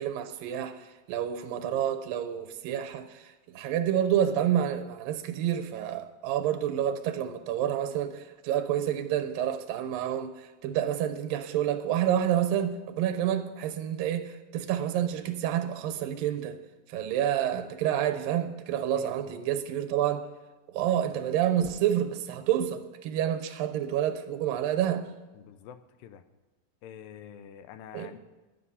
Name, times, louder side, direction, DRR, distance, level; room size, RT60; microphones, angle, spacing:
voice 1, 0.0-16.6 16.9-20.2 20.7-25.1 27.9-28.1, right 10 dB, 85° right, 2.6 m, -29 dB
voice 2, 19.0-19.5 25.3-26.2 26.8-28.2, left 9 dB, 85° left, 2.4 m, -47 dB
11.5 x 9.8 x 5.5 m
omnidirectional pair, 4.0 m